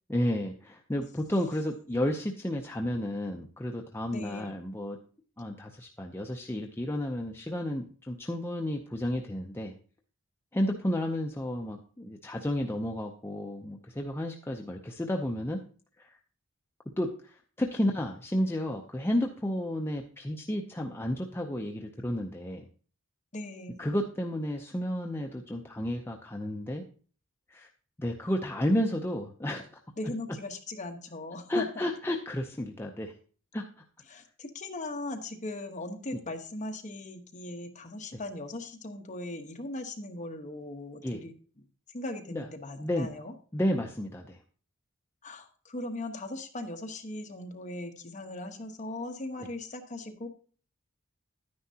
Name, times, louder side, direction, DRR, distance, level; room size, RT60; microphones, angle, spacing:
voice 1, 0.1-5.0 5.4-9.7 10.5-15.6 16.0-16.2 17.0-22.7 23.8-26.8 27.5-27.7 28.0-29.7 31.5-33.1 33.5-33.7 41.0-41.2 42.3-42.5 42.8-43.1 43.5-44.4 49.4-49.5, left 1 dB, 10° left, 1 dB, 0.6 m, -32 dB
voice 2, 4.1-4.5 23.3-23.8 30.0-31.8 34.1-41.3 41.9-43.3 45.2-50.3, left 2 dB, 35° left, 3 dB, 1.1 m, -39 dB
10.5 x 9.6 x 2.8 m, 0.42 s
head